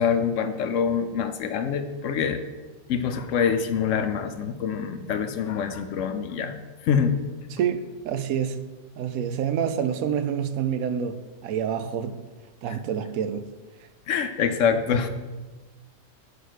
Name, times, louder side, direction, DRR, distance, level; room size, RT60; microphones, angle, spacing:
voice 1, 0.0-2.4 2.9-6.5 6.8-7.2 14.1-15.1, left 7 dB, 70° left, 0.8 m, -25 dB
voice 2, 7.5-8.6 9.0-12.2 12.6-13.5, right 8 dB, 75° right, 1.0 m, -27 dB
6.2 x 5.0 x 6.4 m
omnidirectional pair, 1.5 m